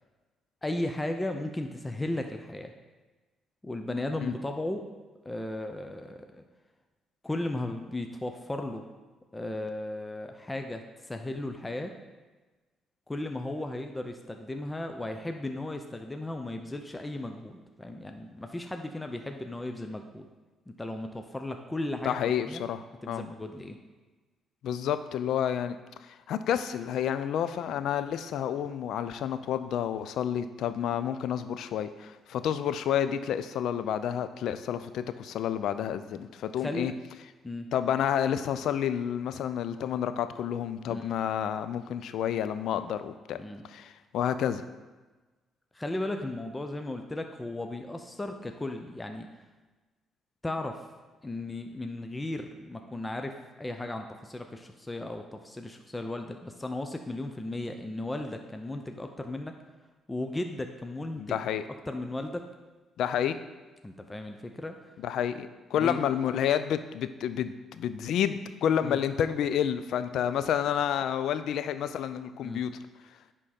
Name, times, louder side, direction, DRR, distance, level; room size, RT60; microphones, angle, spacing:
voice 1, 0.6-2.7 3.6-4.9 5.2-6.4 7.2-8.9 9.3-12.0 13.1-20.3 20.7-22.6 23.0-23.8 36.6-36.9 37.4-37.7 40.9-41.1 43.3-43.6 45.7-49.3 50.4-50.8 51.2-59.5 60.1-61.4 61.9-62.4 63.8-64.8 65.7-66.0 68.8-69.0 72.4-72.6, left 1 dB, 20° left, 5 dB, 0.7 m, -35 dB
voice 2, 22.0-23.3 24.6-25.8 26.1-36.9 37.7-43.4 43.7-44.6 61.2-61.6 63.0-63.4 65.0-72.7, left 9 dB, 70° left, 12 dB, 0.4 m, -30 dB
10.0 x 3.7 x 4.3 m, 1.2 s
supercardioid pair, 55°, 0 cm